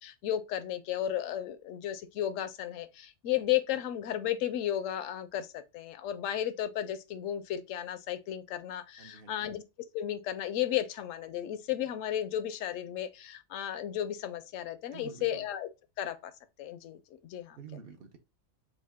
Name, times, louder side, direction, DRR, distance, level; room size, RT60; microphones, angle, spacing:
voice 1, 0.0-9.6 9.9-15.7 16.0-16.3 16.6-17.6, left 11 dB, 75° left, 0.9 m, -34 dB
voice 2, 9.0-9.5 14.9-15.5 17.6-18.2, right 7 dB, 55° right, 0.8 m, -48 dB
5.0 x 2.3 x 3.5 m
omnidirectional pair, 1.3 m